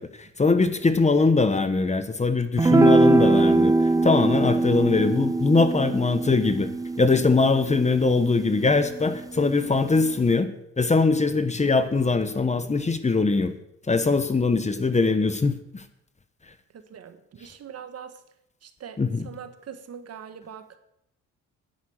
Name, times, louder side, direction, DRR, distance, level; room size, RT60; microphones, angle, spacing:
voice 1, 0.0-3.7 4.0-6.7 7.0-10.5 10.8-13.5 13.9-15.8 19.0-19.3, left 3 dB, 25° left, 10 dB, 1.2 m, -22 dB
sound 1, 2.6-9.1, right 2 dB, 10° right, 0.4 m, -22 dB
voice 2, 16.7-18.2 18.6-20.8, right 8 dB, 55° right, 9 dB, 1.5 m, -42 dB
10.5 x 9.5 x 7.9 m, 0.77 s
cardioid pair, 90°, 30 cm